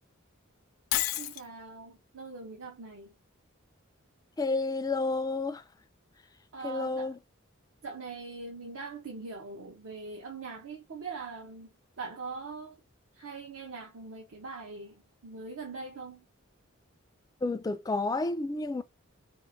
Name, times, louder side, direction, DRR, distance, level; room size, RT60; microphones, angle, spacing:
Shatter, 0.9-1.5, left 14 dB, 85° left, 0.4 m, -29 dB
voice 1, 1.2-3.1 6.5-7.1 7.8-12.8 13.1-16.2, right 4 dB, 75° right, 0.8 m, -42 dB
voice 2, 4.4-5.6 6.6-7.2 17.4-18.8, left 3 dB, 20° left, 0.3 m, -30 dB
4.5 x 2.5 x 2.6 m
head